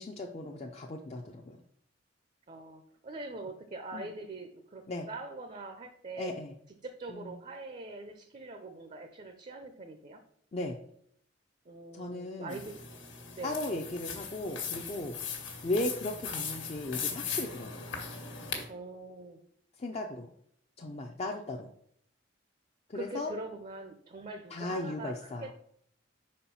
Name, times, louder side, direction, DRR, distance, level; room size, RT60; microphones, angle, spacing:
voice 1, 0.0-1.6 3.9-4.1 4.9-5.1 6.2-6.5 7.1-7.3 10.5-10.8 11.9-12.6 13.4-15.2 15.6-17.8 19.8-20.3 20.8-21.7 22.9-23.3 24.5-25.5, left 2 dB, 35° left, 2 dB, 0.5 m, -36 dB
voice 2, 2.5-6.4 6.8-10.2 11.7-12.8 13.3-13.6 18.7-19.4 22.9-25.5, right 2 dB, 40° right, 7 dB, 0.6 m, -43 dB
sound 1, 12.5-18.6, left 6 dB, 80° left, 1.4 m, -39 dB
5.3 x 4.4 x 5.5 m, 0.68 s
head